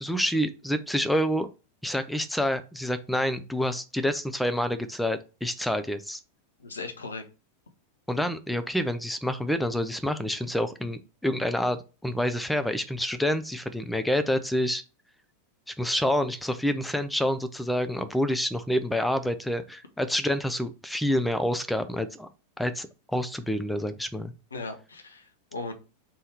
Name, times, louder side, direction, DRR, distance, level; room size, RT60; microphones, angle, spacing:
voice 1, 0.0-1.5 1.8-6.2 8.1-14.8 15.7-22.3 22.6-24.3, equal, ahead, 9 dB, 0.4 m, -28 dB
voice 2, 6.6-7.2 24.5-25.7, left 3 dB, 75° left, 6 dB, 0.8 m, -37 dB
3.7 x 2.7 x 4.6 m, 0.32 s
figure-of-eight pair, 90°, 0 cm